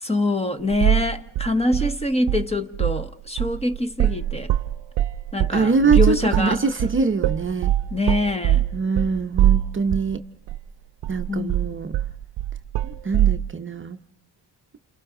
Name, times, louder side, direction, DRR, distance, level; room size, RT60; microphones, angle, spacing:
voice 1, 0.0-4.5 5.3-6.6 7.9-8.7 11.3-11.7, left 2 dB, 15° left, 1.2 m, -25 dB
sound 1, 0.7-1.1 1.4-2.5 2.7-3.1 3.4-10.2 10.5-10.6 11.0-13.4, right 12 dB, 75° right, 0.8 m, -22 dB
voice 2, 5.5-7.7 8.7-10.2 11.1-11.9 12.8-14.0, right 4 dB, 30° right, 0.8 m, -23 dB
29.5 x 28.5 x 3.8 m
cardioid pair, 105°, 43 cm